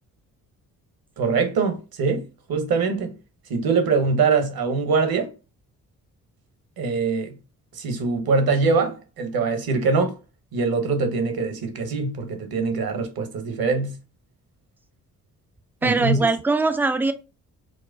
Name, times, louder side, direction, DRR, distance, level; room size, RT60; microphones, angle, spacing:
voice 1, 1.2-2.2 2.5-3.1 3.5-5.3 6.8-7.4 7.8-10.1 10.5-13.9 15.8-16.2, right 4 dB, 55° right, 1.1 m, -23 dB
voice 2, 15.8-17.1, right 3 dB, 5° right, 0.4 m, -21 dB
4.6 x 2.1 x 2.6 m
hypercardioid pair, 40°, 43 cm